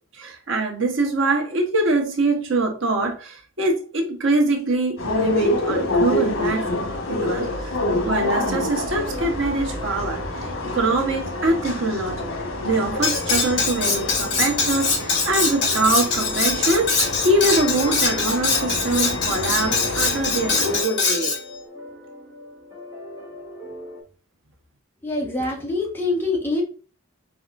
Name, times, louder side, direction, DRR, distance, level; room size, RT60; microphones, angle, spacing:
voice 1, 0.2-6.8 7.1-7.7 8.0-10.2 10.7-12.3 12.6-21.3, right 2 dB, 70° right, 1.2 m, -23 dB
sound 1, 5.0-20.8, left 1 dB, 80° left, 1.5 m, -27 dB
sound 2, 5.7-24.0, equal, 15° right, 1.4 m, -40 dB
Cutlery silverware, 13.0-21.4, left 4 dB, 55° left, 2.4 m, -23 dB
voice 2, 25.0-26.6, left 2 dB, 10° left, 1.2 m, -24 dB
4.8 x 4.3 x 2.5 m
head